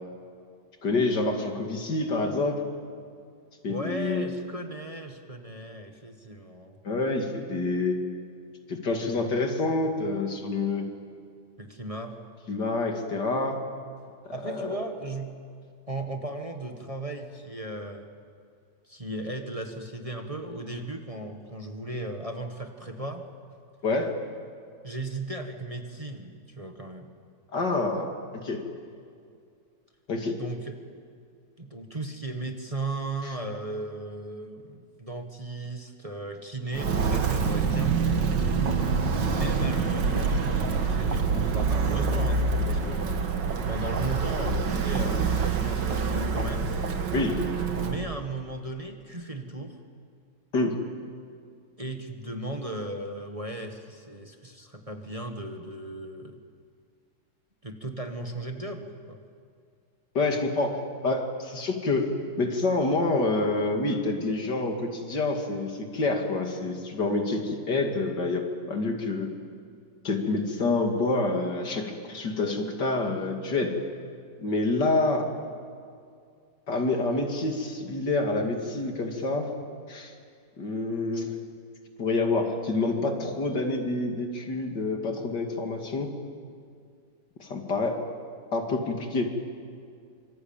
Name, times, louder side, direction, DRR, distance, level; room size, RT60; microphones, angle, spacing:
voice 1, 0.8-2.6 3.6-4.3 6.8-8.0 8.7-10.9 12.5-13.6 14.4-14.8 23.8-24.1 27.5-28.1 28.3-28.6 30.1-30.4 47.1-47.4 50.5-50.8 60.1-60.8 61.0-62.1 62.4-69.3 70.0-73.8 74.4-75.3 76.7-79.5 79.9-80.1 80.6-81.4 82.0-86.1 87.4-88.0 88.5-89.3, left 3 dB, 75° left, 3 dB, 3.1 m, -27 dB
voice 2, 3.7-6.8 9.0-9.4 11.6-12.1 14.3-15.3 15.9-18.1 18.8-23.2 24.8-27.1 30.4-30.8 31.6-38.3 39.3-43.2 43.7-46.7 47.8-49.8 51.8-56.4 57.6-59.2, right 2 dB, 20° right, 4 dB, 1.6 m, -36 dB
Walk footsteps, 36.7-48.0, right 5 dB, 90° right, 2.3 m, -26 dB
25.5 x 24.5 x 8.9 m, 2.3 s
omnidirectional pair, 1.9 m